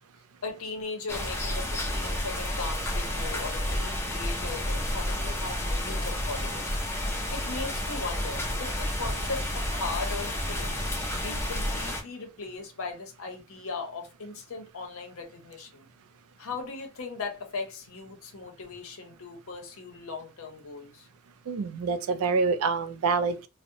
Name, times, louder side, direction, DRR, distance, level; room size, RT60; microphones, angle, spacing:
voice 1, 0.4-6.8 7.0-15.9 16.4-21.1, left 3 dB, 65° left, 0.7 m, -38 dB
sound 1, 1.1-12.0, left 1 dB, 10° left, 0.5 m, -30 dB
voice 2, 21.5-23.5, right 4 dB, 70° right, 0.4 m, -26 dB
2.6 x 2.0 x 2.6 m
head